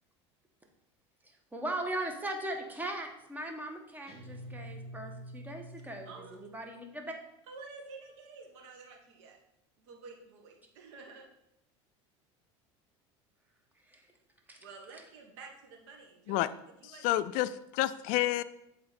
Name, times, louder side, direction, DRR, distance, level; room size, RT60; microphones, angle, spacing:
voice 1, 1.2-7.2 13.9-14.0 14.5-14.6, right 1 dB, 10° right, 3 dB, 1.3 m, -39 dB
Guitar, 4.1-6.7, equal, 40° right, 1.7 m, -47 dB
voice 2, 6.0-6.4 7.5-9.4 9.8-11.3 14.6-17.1, right 4 dB, 75° right, 2 dB, 1.5 m, -50 dB
voice 3, 17.0-18.4, left 15 dB, 60° left, 15 dB, 0.4 m, -29 dB
7.5 x 4.2 x 4.2 m, 0.82 s
hypercardioid pair, 85°, 15 cm